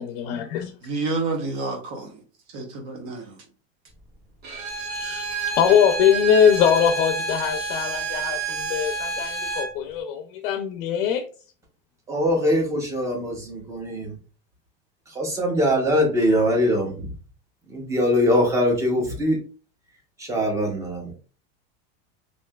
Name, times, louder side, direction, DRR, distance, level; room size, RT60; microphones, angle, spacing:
voice 1, 0.0-0.7 4.9-11.2, left 8 dB, 65° left, 0.5 m, -22 dB
voice 2, 0.8-2.2 2.5-3.4, right 3 dB, 55° right, 1.0 m, -29 dB
Bowed string instrument, 4.4-9.7, right 4 dB, 30° right, 1.2 m, -29 dB
voice 3, 12.1-14.1 15.1-17.1 17.7-19.4 20.2-21.1, equal, 10° right, 0.6 m, -22 dB
3.1 x 2.6 x 2.2 m
supercardioid pair, 165°, 30 cm